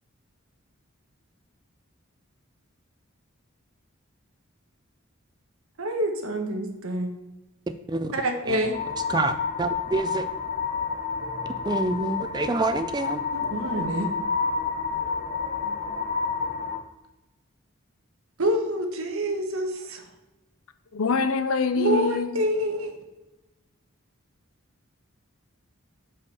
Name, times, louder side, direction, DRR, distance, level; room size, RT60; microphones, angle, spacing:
voice 1, 5.8-7.1 8.1-8.7 13.3-14.1 18.4-20.1 21.7-23.0, right 1 dB, 80° right, 5 dB, 1.2 m, -27 dB
voice 2, 7.7-8.1 8.5-8.6 9.1-10.3 11.6-13.2, right 3 dB, 20° right, 9 dB, 0.3 m, -27 dB
sound 1, 8.7-16.8, left 5 dB, 35° left, 0.8 m, -29 dB
voice 3, 20.9-22.3, left 4 dB, 80° left, 11 dB, 0.6 m, -24 dB
5.6 x 5.2 x 6.2 m, 1.0 s
head